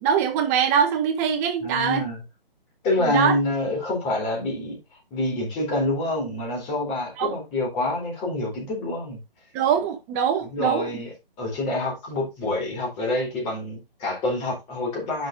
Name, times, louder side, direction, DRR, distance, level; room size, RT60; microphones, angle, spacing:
voice 1, 0.0-2.0 3.0-3.3 7.2-7.3 9.5-10.9, right 8 dB, 15° right, 0.9 m, -23 dB
voice 2, 1.6-2.2 2.8-4.8 5.1-9.2 10.5-11.1 11.4-15.3, left 2 dB, 20° left, 4.0 m, -27 dB
10.0 x 6.8 x 2.7 m
figure-of-eight pair, 140°, 29 cm